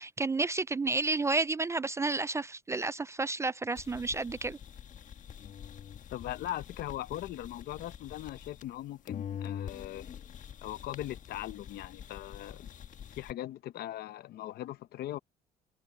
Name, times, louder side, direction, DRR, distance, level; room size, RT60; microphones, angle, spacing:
voice 1, 0.0-4.6, right 3 dB, 15° right, 0.3 m, -31 dB
sound 1, 3.7-8.8 9.1-13.3, left 9 dB, 50° left, 1.4 m, -45 dB
voice 2, 6.1-10.1 10.6-12.7 13.1-15.2, left 13 dB, 70° left, 0.9 m, -40 dB
cardioid pair, 110°, 17 cm